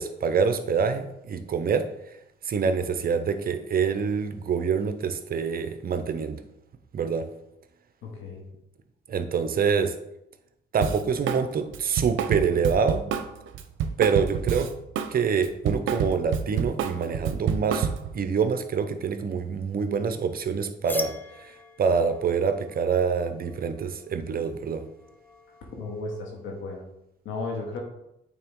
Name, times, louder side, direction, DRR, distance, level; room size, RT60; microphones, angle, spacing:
voice 1, 0.0-1.9 2.5-6.4 6.9-7.3 9.1-9.9 10.7-13.0 14.0-14.7 15.1-17.9 18.1-21.1 21.8-24.8, right 6 dB, 50° right, 8 dB, 0.7 m, -26 dB
voice 2, 8.0-8.4 25.8-26.8 27.3-27.8, left 3 dB, 80° left, 0 dB, 1.9 m, -34 dB
Drum kit, 10.8-11.4 11.7-15.1 15.4-18.2, right 7 dB, 80° right, 0.6 m, -28 dB
sound 1, 20.9-26.4, left 2 dB, 10° left, 0.5 m, -43 dB
8.7 x 3.8 x 3.7 m, 0.84 s
cardioid pair, 90°, 20 cm